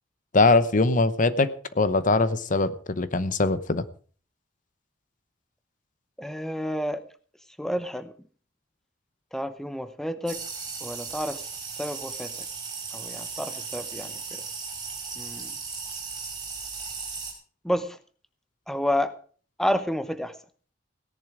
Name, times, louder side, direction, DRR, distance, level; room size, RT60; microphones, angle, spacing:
voice 1, 0.3-1.5 1.8-3.8, left 3 dB, 45° left, 14 dB, 0.8 m, -22 dB
voice 2, 6.2-7.0 7.6-8.1 9.3-10.4 10.8-11.4 11.8-12.3 12.9-14.1 15.2-15.5 17.6-18.0 18.7-19.1 19.6-20.3, equal, ahead, 11 dB, 0.8 m, -29 dB
sound 1, 10.3-17.3, right 5 dB, 25° right, 4.7 m, -36 dB
17.0 x 11.0 x 4.9 m, 0.42 s
head